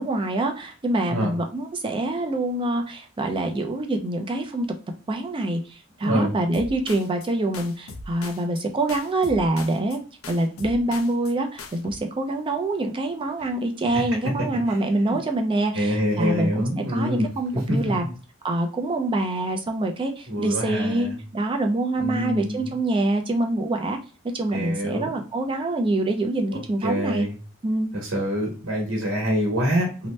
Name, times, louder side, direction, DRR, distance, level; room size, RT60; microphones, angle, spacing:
voice 1, 0.0-4.7 5.1-10.0 10.3-18.0 18.4-24.0 24.3-27.3 27.6-27.9, right 2 dB, 25° right, 4 dB, 0.4 m, -25 dB
voice 2, 6.0-6.3 13.9-14.0 14.7-14.8 15.1-15.2 15.7-17.3 17.7-17.8 20.3-21.2 22.0-22.7 24.5-25.1 26.8-27.4 27.9-30.1, equal, 90° right, -2 dB, 1.0 m, -25 dB
sound 1, 6.5-7.3 7.5-8.6 8.9-10.0 10.2-11.3 11.6-11.9, left 3 dB, 85° left, 0.5 m, -39 dB
2.8 x 2.1 x 3.1 m, 0.36 s
head